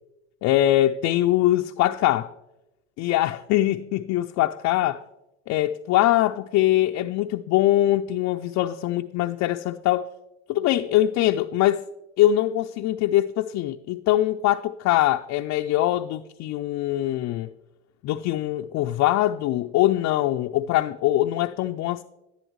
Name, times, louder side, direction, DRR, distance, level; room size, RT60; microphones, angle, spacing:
voice 1, 0.4-2.3 3.0-5.0 5.5-10.1 10.5-11.8 12.2-17.5 18.0-22.0, left 14 dB, 50° left, 0.4 m, -22 dB
11.0 x 10.0 x 3.1 m
hypercardioid pair, 75°, 34 cm